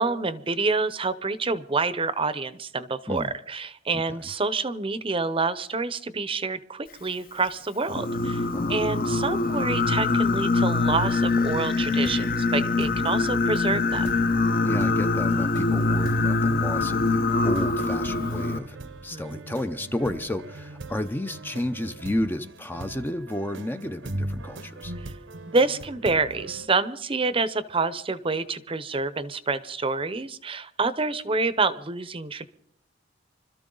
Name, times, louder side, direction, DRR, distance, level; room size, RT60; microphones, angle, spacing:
voice 1, 0.0-14.1 19.1-19.5 24.9-25.1 25.5-32.5, right 3 dB, 30° right, 14 dB, 0.7 m, -27 dB
Singing, 7.9-18.6, left 3 dB, 50° left, 0.9 m, -24 dB
sound 1, 12.1-12.4 12.8-13.1 13.5-13.7 14.0-26.7, right 2 dB, 75° right, 1.0 m, -40 dB
voice 2, 14.6-18.8 19.0-24.9, left 1 dB, 10° left, 9 dB, 0.5 m, -32 dB
25.5 x 13.5 x 3.9 m, 0.69 s
head